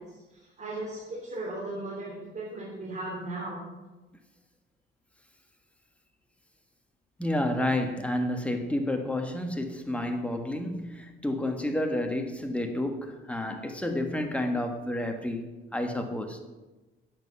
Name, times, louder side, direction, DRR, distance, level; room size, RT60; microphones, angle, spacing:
voice 1, 0.0-3.6, right 2 dB, 35° right, -4 dB, 3.1 m, -37 dB
voice 2, 7.2-16.4, left 1 dB, 5° left, 5 dB, 1.4 m, -30 dB
9.1 x 7.7 x 5.5 m, 1.1 s
cardioid pair, 90°, 20 cm